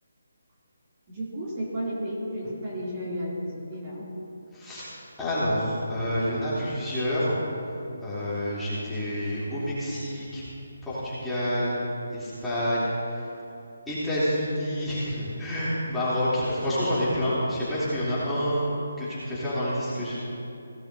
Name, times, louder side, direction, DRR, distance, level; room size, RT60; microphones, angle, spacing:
voice 1, 1.1-4.1, equal, 25° right, -7 dB, 2.8 m, -33 dB
voice 2, 4.5-4.9 5.2-7.4 8.0-10.4 10.8-11.7 12.1-13.3 13.9-18.7 19.0-20.2, equal, 5° left, -14 dB, 3.3 m, -28 dB
17.5 x 11.5 x 2.8 m, 2.7 s
hypercardioid pair, 165°, 0 cm